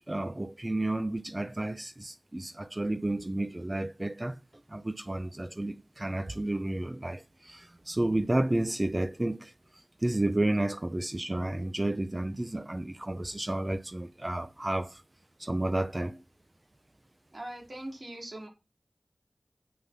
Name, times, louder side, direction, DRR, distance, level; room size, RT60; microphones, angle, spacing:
voice 1, 0.0-4.4 4.7-15.0 15.4-16.2, right 1 dB, 30° right, 0.6 m, -31 dB
voice 2, 17.3-18.5, right 1 dB, 55° right, 4.5 m, -41 dB
8.8 x 6.7 x 5.6 m
wide cardioid pair, 45°, 0 cm